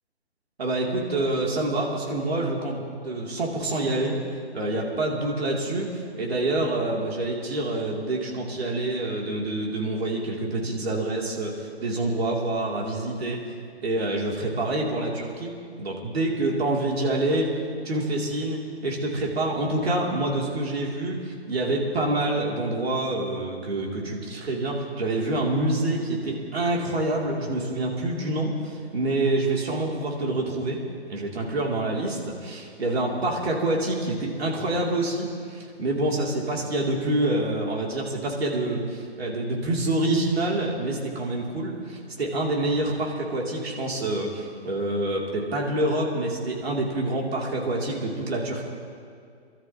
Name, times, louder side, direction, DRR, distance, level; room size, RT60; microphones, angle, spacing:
voice 1, 0.6-4.2 4.5-13.4 13.8-15.5 15.8-17.5 17.8-30.8 31.1-48.7, right 2 dB, 70° right, -2 dB, 3.3 m, -27 dB
27.5 x 13.0 x 3.1 m, 2.3 s
hypercardioid pair, 155°, 33 cm